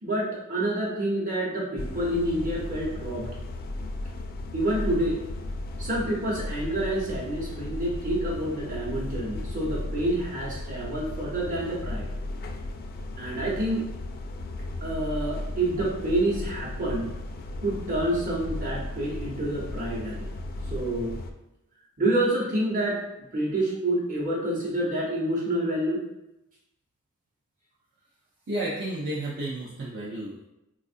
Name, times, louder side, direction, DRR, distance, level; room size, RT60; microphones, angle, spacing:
voice 1, 0.0-3.3 4.5-5.2 5.8-12.1 13.2-13.8 14.8-17.1 17.6-20.3 20.7-21.1 22.0-23.0 23.3-26.0, right 1 dB, 40° right, -4 dB, 1.0 m, -28 dB
sound 1, 1.8-21.3, left 2 dB, 45° left, 0.3 m, -35 dB
voice 2, 28.5-30.5, right 1 dB, 55° right, -6 dB, 0.5 m, -32 dB
4.2 x 2.4 x 2.5 m, 0.89 s
head